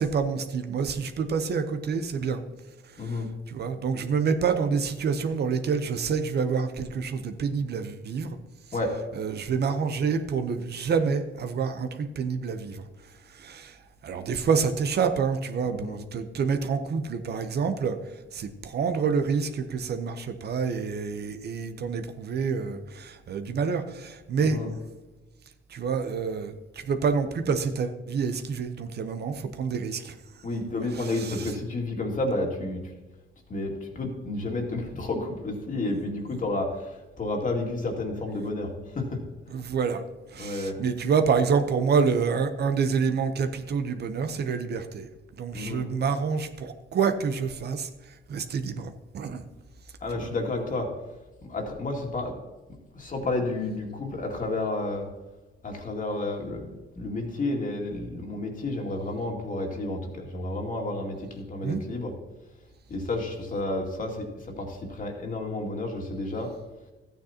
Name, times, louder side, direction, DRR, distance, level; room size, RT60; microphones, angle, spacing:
voice 1, 0.0-2.4 2.8-8.4 9.1-12.9 13.3-13.8 14.0-18.0 18.3-24.8 25.7-30.1 30.9-31.5 39.5-40.0 40.3-45.1 45.4-49.4 50.1-50.3 61.6-61.8, right 5 dB, 55° right, 8 dB, 0.8 m, -28 dB
voice 2, 3.0-3.3 8.7-9.0 15.6-16.0 24.4-24.7 30.4-32.8 33.5-39.2 40.4-40.8 45.5-45.9 50.0-50.9 51.5-52.4 52.9-55.1 55.6-62.1 62.9-66.5, left 2 dB, 40° left, 1 dB, 2.3 m, -31 dB
13.0 x 9.3 x 2.9 m, 1.1 s
cardioid pair, 90°, 20 cm